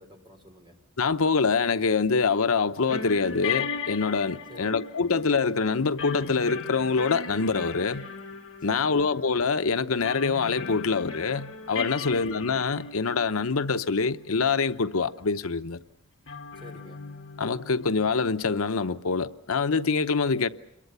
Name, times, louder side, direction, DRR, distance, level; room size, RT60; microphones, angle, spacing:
voice 1, 0.0-0.9 4.5-4.8 8.7-9.1 12.0-12.4 16.6-17.1, left 1 dB, 20° right, 3.7 m, -49 dB
voice 2, 1.0-8.1 8.6-15.8 17.4-20.5, left 4 dB, 85° left, 0.8 m, -25 dB
sound 1, 2.9-14.1 14.5-14.7 16.3-18.1, left 5 dB, 65° left, 1.7 m, -37 dB
28.5 x 22.5 x 6.8 m
head